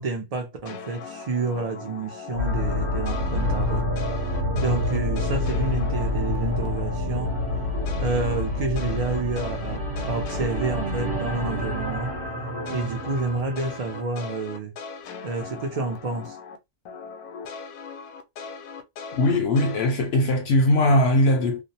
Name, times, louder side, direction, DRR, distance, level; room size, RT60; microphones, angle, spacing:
voice 1, 0.0-3.9 4.6-7.3 8.0-12.1 12.7-14.7 15.2-16.4, right 3 dB, 85° right, 0.3 m, -29 dB
sound 1, 0.7-7.0 7.3-16.6 16.9-19.9, left 5 dB, 80° left, 1.0 m, -39 dB
sound 2, 2.3-14.3, left 1 dB, 45° right, 0.9 m, -27 dB
voice 2, 19.1-21.6, left 1 dB, 65° left, 0.7 m, -20 dB
2.5 x 2.0 x 2.7 m
omnidirectional pair, 1.5 m